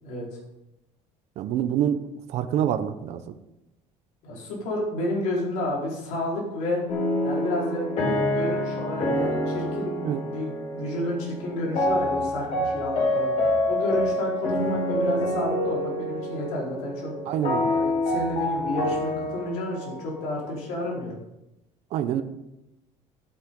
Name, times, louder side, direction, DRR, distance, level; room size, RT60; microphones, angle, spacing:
voice 1, 1.4-2.0 2.3-3.3 10.0-10.2 17.3-17.7 21.9-22.2, right 10 dB, 60° right, 10 dB, 0.9 m, -26 dB
voice 2, 4.2-6.8 7.2-7.8 8.2-13.3 13.7-17.1 17.6-21.2, left 1 dB, 75° left, -3 dB, 4.6 m, -31 dB
sound 1, 6.9-20.9, left 1 dB, 55° left, 4.6 m, -27 dB
15.5 x 8.9 x 3.9 m, 0.92 s
cardioid pair, 145°, 12 cm